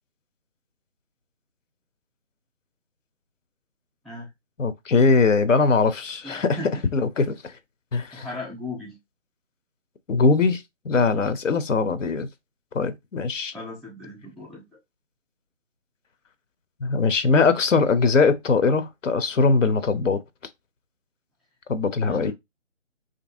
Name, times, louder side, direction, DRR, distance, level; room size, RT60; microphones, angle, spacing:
voice 1, 4.6-6.6 6.9-7.5 7.9-8.3 10.1-12.3 12.7-13.5 16.8-20.2 21.7-22.3, left 4 dB, 80° left, 0.6 m, -21 dB
voice 2, 6.2-6.7 8.1-9.0 11.0-11.3 13.5-14.6 22.0-22.3, left 2 dB, ahead, 0.4 m, -37 dB
2.7 x 2.6 x 2.5 m
figure-of-eight pair, 155°, 38 cm